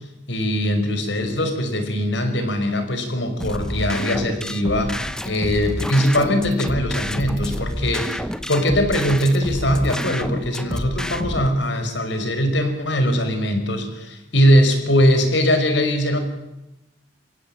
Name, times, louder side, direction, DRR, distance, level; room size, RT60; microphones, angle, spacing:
voice 1, 0.3-16.2, equal, 70° left, 7 dB, 5.3 m, -21 dB
sound 1, 3.4-11.5, equal, 5° left, 1.0 m, -29 dB
30.0 x 16.5 x 9.1 m, 0.95 s
head